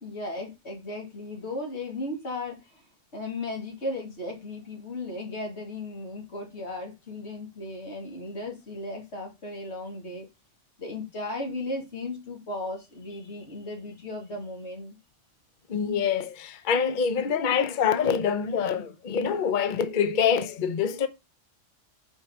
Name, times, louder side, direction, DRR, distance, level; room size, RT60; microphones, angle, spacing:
voice 1, 0.0-2.9 3.1-10.3 10.8-14.9, left 2 dB, 65° left, 2.4 m, -36 dB
voice 2, 15.7-21.1, left 7 dB, 50° left, 0.8 m, -25 dB
4.7 x 4.5 x 5.7 m
omnidirectional pair, 1.3 m